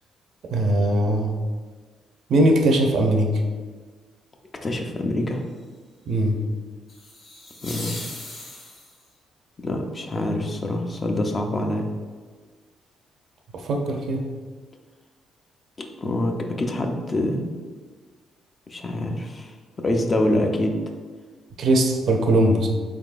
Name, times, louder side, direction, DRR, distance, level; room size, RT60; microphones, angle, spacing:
voice 1, 0.5-1.3 2.3-3.3 6.1-6.4 13.5-14.2 21.6-22.7, right 1 dB, 65° right, 2 dB, 0.5 m, -20 dB
voice 2, 4.6-5.5 7.6-8.0 9.6-11.9 16.0-17.5 18.7-20.8, left 1 dB, 35° left, 3 dB, 0.5 m, -25 dB
sound 1, 6.9-9.1, left 2 dB, 55° left, 1.4 m, -38 dB
3.8 x 3.5 x 2.4 m, 1.4 s
cardioid pair, 90°, 0 cm